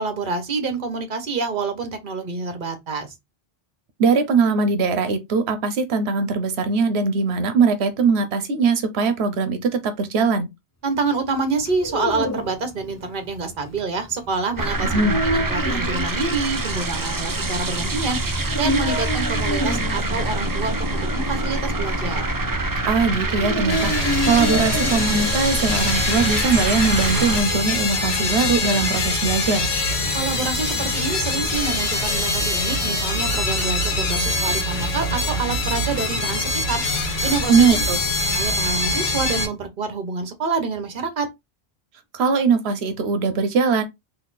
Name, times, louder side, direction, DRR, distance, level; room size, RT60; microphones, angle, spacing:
voice 1, 0.0-3.1 10.8-18.2 18.6-22.3 30.1-36.8 37.2-37.8 38.3-41.3, right 4 dB, 55° right, 1.1 m, -27 dB
voice 2, 4.0-10.5 14.9-15.2 22.8-29.7 37.5-38.0 42.1-43.8, right 4 dB, 85° right, 1.0 m, -21 dB
Dog, 11.6-25.3, equal, 20° left, 0.6 m, -29 dB
sound 1, 14.6-27.4, right 2 dB, 25° right, 0.5 m, -25 dB
sound 2, 23.7-39.5, left 2 dB, 85° left, 1.3 m, -24 dB
4.0 x 2.8 x 4.0 m
omnidirectional pair, 1.0 m